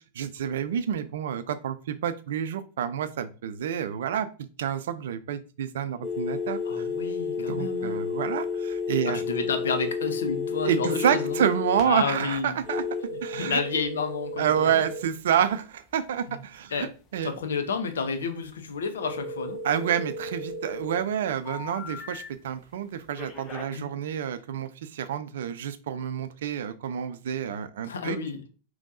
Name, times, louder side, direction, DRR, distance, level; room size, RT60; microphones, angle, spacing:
voice 1, 0.1-4.3 4.6-6.9 7.4-9.2 10.6-12.8 13.2-13.6 14.4-17.3 19.6-28.2, right 9 dB, 60° right, 12 dB, 0.4 m, -28 dB
sound 1, 6.0-11.8 12.6-15.0 19.0-21.0 21.4-22.3 23.2-23.6, left 4 dB, 30° left, 1.0 m, -32 dB
voice 2, 6.6-8.0 9.1-11.5 11.8-12.6 13.1-14.8 16.3-16.4 16.7-16.9 17.2-19.6 23.7-23.8 27.8-28.4, left 5 dB, 65° left, 7 dB, 0.7 m, -31 dB
5.1 x 3.1 x 2.5 m, 0.36 s
figure-of-eight pair, 90°, 0 cm